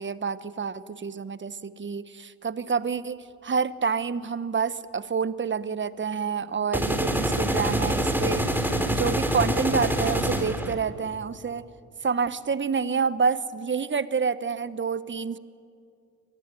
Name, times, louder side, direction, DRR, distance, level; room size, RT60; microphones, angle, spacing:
voice 1, 0.0-11.7 12.0-15.4, right 5 dB, 30° right, 15 dB, 1.2 m, -28 dB
sound 1, 6.7-10.7, right 1 dB, 5° right, 3.6 m, -25 dB
25.0 x 19.5 x 9.1 m, 2.4 s
hypercardioid pair, 60°, 40 cm